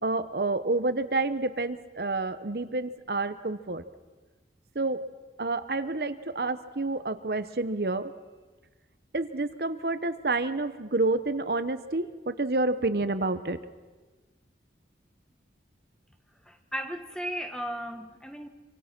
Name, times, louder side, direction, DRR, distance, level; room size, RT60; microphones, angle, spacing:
voice 1, 0.0-3.8 4.7-5.0 5.4-8.1 9.1-13.6, right 2 dB, 60° right, 0.9 m, -29 dB
voice 2, 16.4-18.5, equal, 5° left, 1.2 m, -35 dB
26.0 x 24.5 x 6.0 m
head